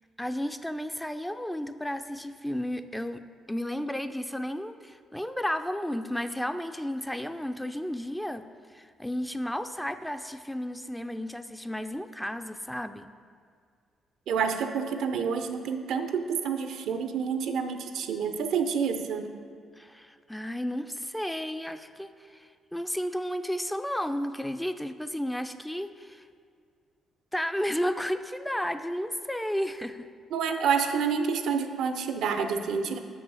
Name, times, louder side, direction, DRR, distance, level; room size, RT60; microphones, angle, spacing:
voice 1, 0.2-13.1 19.8-26.3 27.3-30.1, equal, 5° left, 9 dB, 0.5 m, -33 dB
voice 2, 14.3-19.3 30.3-33.0, right 6 dB, 70° right, 8 dB, 0.6 m, -28 dB
6.1 x 5.6 x 6.8 m, 2.1 s
hypercardioid pair, 45°, 0 cm